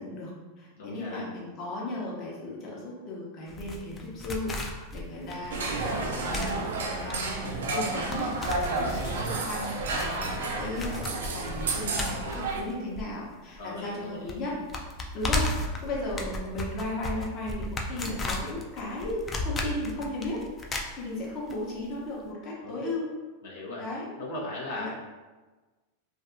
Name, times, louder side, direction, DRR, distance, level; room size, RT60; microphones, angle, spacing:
voice 1, 0.0-6.5 6.8-14.6 15.1-20.4 20.7-23.1 23.8-24.1 24.8-24.9, left 2 dB, 40° left, -4 dB, 0.8 m, -36 dB
voice 2, 0.8-1.3 13.6-14.3 15.2-15.3 22.6-22.8 23.4-23.8 24.2-24.9, left 2 dB, 85° left, -6 dB, 0.7 m, -38 dB
sound 1, 3.5-13.6 13.8-13.9 14.3-21.6 21.8-21.9, left 2 dB, 25° left, 0.3 m, -35 dB
sound 2, 5.5-12.6, right 3 dB, 85° right, 0.4 m, -31 dB
2.5 x 2.3 x 2.5 m, 1.3 s
hypercardioid pair, 115°, 0 cm